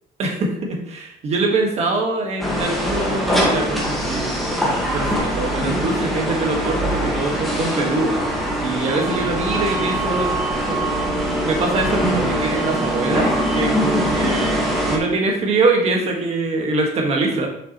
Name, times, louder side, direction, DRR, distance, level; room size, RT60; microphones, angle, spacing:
voice 1, 0.2-8.1 8.6-10.4 10.7-11.0 11.3-17.5, right 3 dB, 45° right, 1 dB, 1.5 m, -23 dB
sound 1, 2.4-15.0, equal, ahead, 1.5 m, -22 dB
6.9 x 6.0 x 3.0 m, 0.72 s
cardioid pair, 140°, 15 cm